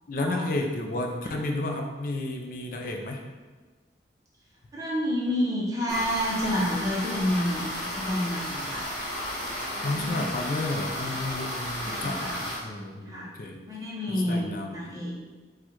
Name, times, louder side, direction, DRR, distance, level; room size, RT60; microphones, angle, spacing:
voice 1, 0.1-3.2 9.8-13.6 14.1-14.8, left 2 dB, 50° left, 3 dB, 0.5 m, -32 dB
voice 2, 4.7-8.8 9.8-10.3 11.8-12.4 13.1-13.3 13.7-15.1, equal, 20° right, -5 dB, 0.8 m, -29 dB
sound 1, 5.9-12.6, equal, 25° left, 1.1 m, -33 dB
4.3 x 2.3 x 4.5 m, 1.3 s
head